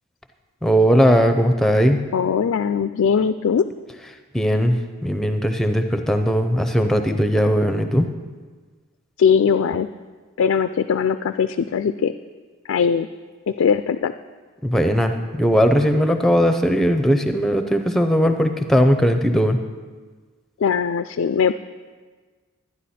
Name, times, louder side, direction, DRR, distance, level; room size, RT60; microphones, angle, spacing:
voice 1, 0.6-2.0 4.3-8.1 14.6-19.6, equal, ahead, 7 dB, 0.5 m, -18 dB
voice 2, 2.1-3.7 9.2-9.9 10.4-12.1 12.7-13.1 13.5-14.1 20.6-21.6, left 6 dB, 70° left, 10 dB, 0.3 m, -20 dB
12.5 x 9.8 x 4.3 m, 1.4 s
head